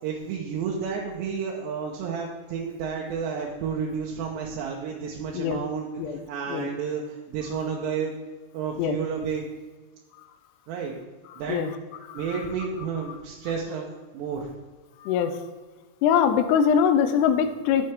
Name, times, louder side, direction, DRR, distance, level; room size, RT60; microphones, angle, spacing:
voice 1, 0.0-8.2 8.5-9.4 10.7-10.9 11.4-11.6 12.1-13.9 14.1-14.5, right 6 dB, 85° right, -2 dB, 3.2 m, -31 dB
voice 2, 11.3-11.7 12.1-12.4 15.0-15.4 16.0-17.9, left 7 dB, 80° left, 9 dB, 2.7 m, -23 dB
12.0 x 7.7 x 3.5 m, 1.3 s
omnidirectional pair, 4.9 m